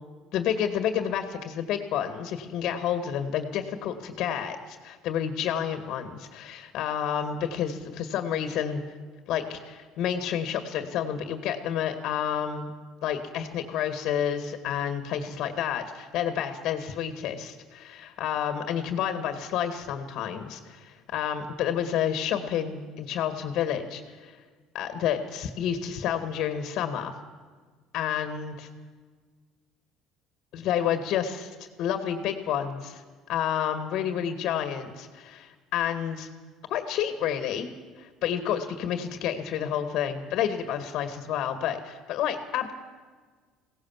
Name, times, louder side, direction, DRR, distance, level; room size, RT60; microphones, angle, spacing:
voice 1, 0.3-8.8 9.3-12.7 13.0-24.4 24.7-27.1 27.9-28.7 30.5-36.3 36.7-37.7 38.0-42.7, left 9 dB, 65° left, 8 dB, 2.0 m, -30 dB
22.0 x 17.5 x 7.5 m, 1.5 s
supercardioid pair, 100°, 0 cm